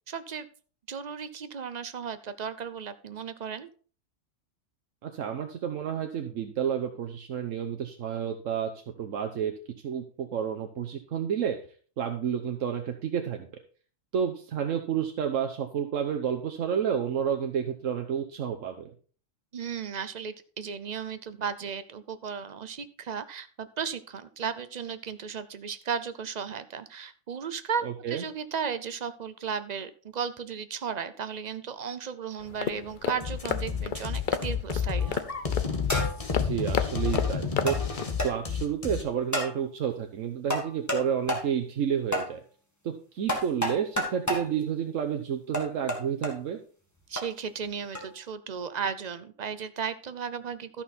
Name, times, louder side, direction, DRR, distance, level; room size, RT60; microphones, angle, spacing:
voice 1, 0.1-0.5 0.9-3.7 19.5-35.3 47.1-50.8, right 6 dB, 45° right, 12 dB, 0.7 m, -35 dB
voice 2, 5.0-9.5 9.8-11.6 12.0-13.5 14.1-18.9 27.8-28.2 36.3-37.9 38.2-42.4 42.8-46.6, right 8 dB, 80° right, 5 dB, 1.2 m, -30 dB
sound 1, 32.4-38.2, left 8 dB, 50° left, 0.7 m, -33 dB
sound 2, 33.2-39.0, left 6 dB, 30° left, 1.2 m, -30 dB
sound 3, 35.0-35.3 35.9-36.3 37.1-37.2 37.7-37.8 38.2-38.3 39.3-39.6 40.5-41.0 41.3-41.5 42.1-42.3 43.3-44.5 45.5-46.3 47.2-47.3 48.0-48.1, left 1 dB, 15° left, 1.9 m, -30 dB
13.0 x 5.9 x 4.2 m, 0.41 s
omnidirectional pair, 1.3 m